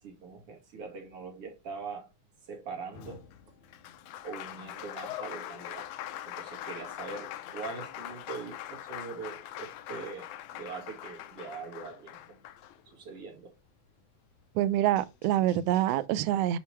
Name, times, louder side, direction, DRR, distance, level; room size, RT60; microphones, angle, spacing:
voice 1, 0.0-2.1 2.4-3.3 4.2-5.9 6.3-12.4 12.9-13.5, right 5 dB, 50° right, 3.0 m, -42 dB
Applause, 2.9-13.2 14.6-14.7 15.0-16.0, left 12 dB, 80° left, 2.1 m, -43 dB
voice 2, 14.5-16.6, right 12 dB, 90° right, 1.4 m, -26 dB
7.2 x 5.5 x 3.2 m
omnidirectional pair, 3.4 m